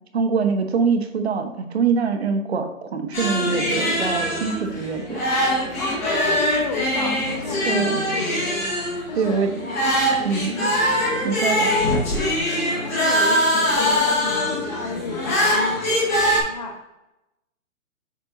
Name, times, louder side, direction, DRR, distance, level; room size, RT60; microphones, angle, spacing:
voice 1, 0.1-5.2 7.7-8.0 9.2-9.5 10.2-10.6 11.2-11.7, right 5 dB, 50° right, 6 dB, 1.1 m, -24 dB
sound 1, 3.1-16.4, equal, 10° left, 0.9 m, -22 dB
voice 2, 5.8-8.6 9.1-9.5 10.5-10.8 12.6-15.9 16.4-16.9, left 3 dB, 30° left, 2 dB, 1.1 m, -32 dB
7.8 x 4.3 x 3.8 m, 0.93 s
hypercardioid pair, 175°, 40 cm